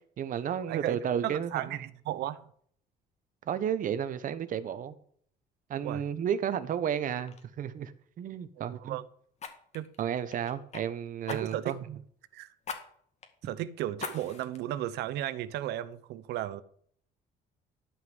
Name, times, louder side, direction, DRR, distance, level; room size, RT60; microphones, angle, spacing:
voice 1, 0.2-1.8 3.5-4.9 5.7-9.0 10.0-11.8, right 9 dB, 55° right, 1.0 m, -32 dB
voice 2, 0.7-2.4 5.8-6.0 8.7-9.0 9.7-9.9 11.3-12.0 12.3-12.5 13.4-16.6, right 13 dB, 80° right, 0.8 m, -35 dB
Fire, 6.7-6.9 7.3-7.5 9.4-10.8 11.3-11.8 12.6-12.8 13.2-13.3 14.0-14.6 15.1-15.2, left 5 dB, 40° left, 2.0 m, -41 dB
13.0 x 5.4 x 7.8 m
cardioid pair, 110°, 17 cm